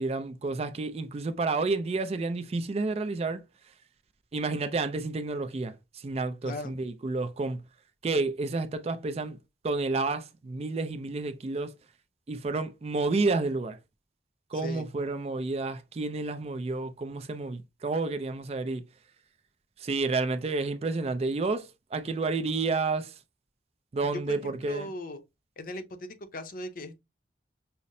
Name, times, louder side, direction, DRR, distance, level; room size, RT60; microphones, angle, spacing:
voice 1, 0.0-3.4 4.3-7.6 8.0-9.4 9.6-11.7 12.3-13.8 14.5-18.8 19.8-23.2 23.9-24.9, right 3 dB, 35° right, 0.3 m, -30 dB
voice 2, 14.5-14.8 24.3-25.2 25.6-27.0, left 1 dB, 50° left, 0.7 m, -39 dB
5.6 x 2.0 x 2.6 m
head